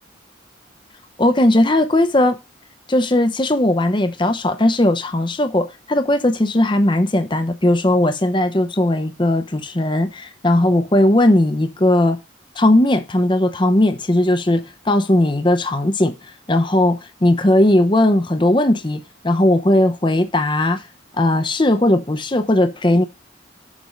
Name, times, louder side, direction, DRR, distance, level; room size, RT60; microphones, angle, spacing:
voice 1, 1.2-2.4 2.9-12.2 12.6-16.1 16.5-20.8 21.2-23.0, left 1 dB, 25° left, 0.7 m, -17 dB
7.3 x 6.1 x 5.1 m
head